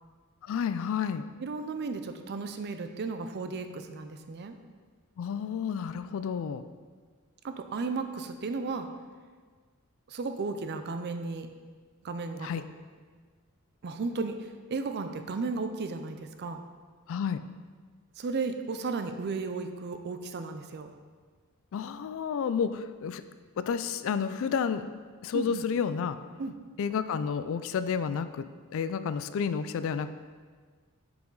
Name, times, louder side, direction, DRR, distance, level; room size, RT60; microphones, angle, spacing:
voice 1, 0.4-1.2 5.2-6.6 12.4-12.6 17.1-17.4 21.7-23.2 23.6-24.9 25.2-26.2 26.8-28.5 28.7-30.1, left 6 dB, 65° left, 12 dB, 0.3 m, -30 dB
voice 2, 1.4-4.6 7.4-8.9 10.1-11.5 12.0-12.5 13.8-16.6 18.2-20.9 25.3-25.6 26.4-26.5, right 4 dB, 50° right, 7 dB, 0.4 m, -34 dB
6.9 x 4.9 x 3.8 m, 1.5 s
head